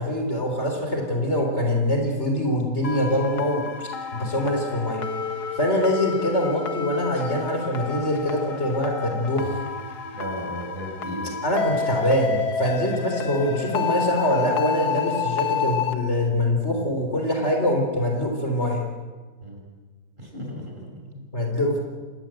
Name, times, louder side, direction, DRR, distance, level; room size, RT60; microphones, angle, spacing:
voice 1, 0.0-5.0 5.6-9.6 11.4-18.9 21.3-21.8, left 1 dB, 45° left, 2 dB, 4.1 m, -24 dB
sound 1, 2.8-15.9, left 6 dB, 75° left, 2.1 m, -30 dB
voice 2, 10.1-11.3 19.4-19.6 20.2-21.2, equal, 30° right, 0 dB, 6.6 m, -35 dB
27.0 x 20.0 x 7.8 m, 1.4 s
omnidirectional pair, 1.7 m